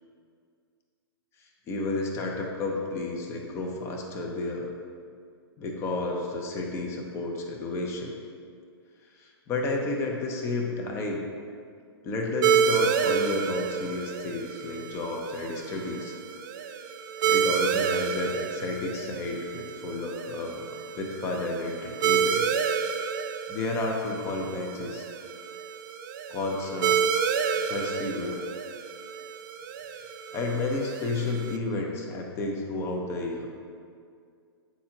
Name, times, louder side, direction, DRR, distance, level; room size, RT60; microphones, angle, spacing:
voice 1, 1.7-4.7 5.6-8.1 9.1-11.2 12.0-16.1 16.7-16.8 17.2-20.6 21.0-22.5 23.5-25.1 26.3-27.0 27.5-28.3 29.9-30.0 30.3-33.5, left 2 dB, 20° left, 1 dB, 0.6 m, -31 dB
sound 1, 12.4-31.6, right 7 dB, 50° right, 0.4 m, -29 dB
8.4 x 4.3 x 2.9 m, 2.2 s
hypercardioid pair, 150°, 14 cm